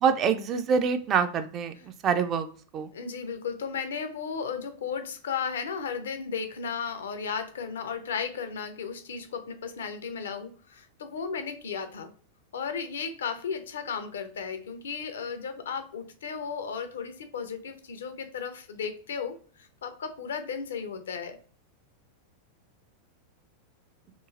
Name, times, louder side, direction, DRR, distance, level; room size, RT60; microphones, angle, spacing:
voice 1, 0.0-1.7 2.0-2.5 2.7-2.9, right 6 dB, 30° right, 9 dB, 0.3 m, -25 dB
voice 2, 2.9-12.1 12.5-21.4, left 6 dB, 65° left, 8 dB, 0.5 m, -35 dB
3.0 x 2.4 x 2.4 m, 0.43 s
figure-of-eight pair, 90°, 0 cm